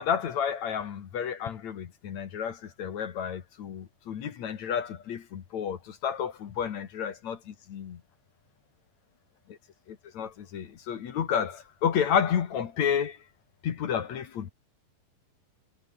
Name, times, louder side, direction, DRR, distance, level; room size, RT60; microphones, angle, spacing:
voice 1, 0.0-8.0 9.5-9.6 9.9-13.2 13.6-14.5, left 8 dB, 55° left, 2.2 m, -31 dB
omnidirectional pair, 5.5 m